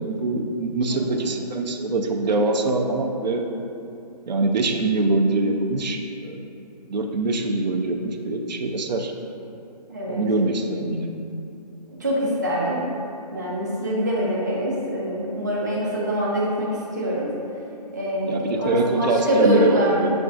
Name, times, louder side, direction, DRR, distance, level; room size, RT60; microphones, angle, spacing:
voice 1, 0.0-3.4 4.3-6.5 6.9-9.1 10.1-11.1 18.3-20.1, right 2 dB, 85° right, 3 dB, 0.5 m, -23 dB
voice 2, 0.9-1.2 9.9-10.2 12.0-12.8 13.3-16.7 16.9-17.3 17.9-20.1, equal, 25° right, -6 dB, 0.5 m, -24 dB
6.9 x 2.4 x 2.4 m, 2.7 s
hypercardioid pair, 180°, 21 cm